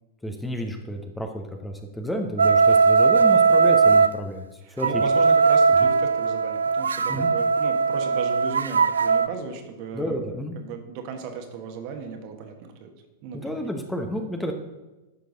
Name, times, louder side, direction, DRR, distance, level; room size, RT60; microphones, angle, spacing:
voice 1, 0.2-5.0 5.8-5.9 7.1-7.3 9.9-10.6 13.3-14.6, equal, 5° left, 4 dB, 0.9 m, -31 dB
sound 1, 2.4-4.1 4.8-9.3, right 5 dB, 70° right, 0.3 m, -19 dB
voice 2, 4.6-10.2 10.6-12.9 13.2-13.6, right 6 dB, 45° right, 4 dB, 1.4 m, -36 dB
11.0 x 6.6 x 4.0 m, 1.1 s
figure-of-eight pair, 95°, 0 cm